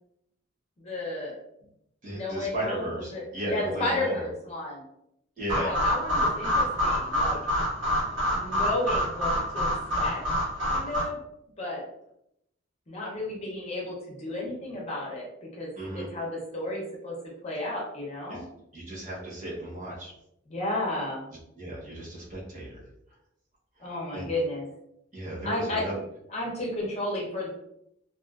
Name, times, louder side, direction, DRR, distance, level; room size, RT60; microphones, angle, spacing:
voice 1, 0.8-1.4 2.1-4.8 5.5-7.4 8.4-9.7 10.0-10.2 10.7-11.2 11.6-11.8 12.9-17.1 17.4-18.4 20.5-21.3 23.8-24.6 25.4-25.9 26.3-27.5, left 1 dB, 35° left, -3 dB, 0.7 m, -32 dB
voice 2, 2.0-4.2 5.4-5.8 7.0-7.2 15.8-16.1 18.3-18.4 18.7-20.1 21.6-22.8 24.1-24.3 25.1-26.0, right 1 dB, 40° right, -6 dB, 1.0 m, -35 dB
sound 1, 5.5-11.0, equal, 75° right, 1.1 m, -27 dB
2.6 x 2.4 x 2.4 m, 0.78 s
head